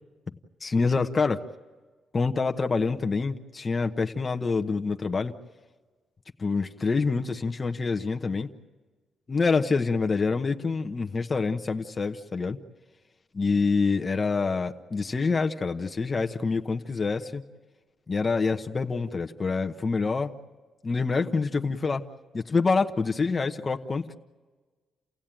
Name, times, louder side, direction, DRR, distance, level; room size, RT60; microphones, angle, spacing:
voice 1, 0.6-1.4 2.1-5.3 6.4-8.5 9.3-12.6 13.3-17.4 18.1-20.3 20.8-22.0 22.3-24.1, left 4 dB, 35° left, 5 dB, 1.0 m, -26 dB
30.0 x 16.0 x 9.0 m, 1.3 s
cardioid pair, 85°, 0 cm